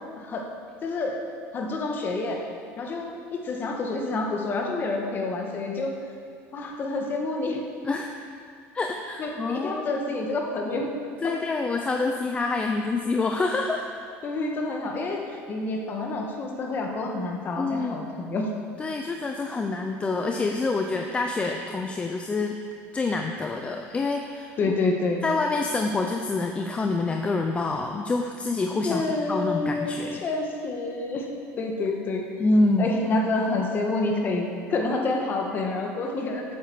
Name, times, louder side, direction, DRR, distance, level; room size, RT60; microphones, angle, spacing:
voice 1, 0.8-1.1 1.5-2.4 2.8-5.9 6.5-7.6 9.2-10.9 11.2-11.3 14.2-18.5 24.6-25.3 28.8-31.3 31.6-32.3 32.8-36.4, left 2 dB, 35° left, 1 dB, 1.7 m, -28 dB
voice 2, 8.7-10.0 11.2-13.9 17.6-17.9 18.8-22.6 22.9-24.5 25.2-30.2 32.4-32.9, left 3 dB, 20° left, 3 dB, 0.6 m, -26 dB
8.7 x 8.0 x 7.1 m, 2.3 s
cardioid pair, 130°, 6 cm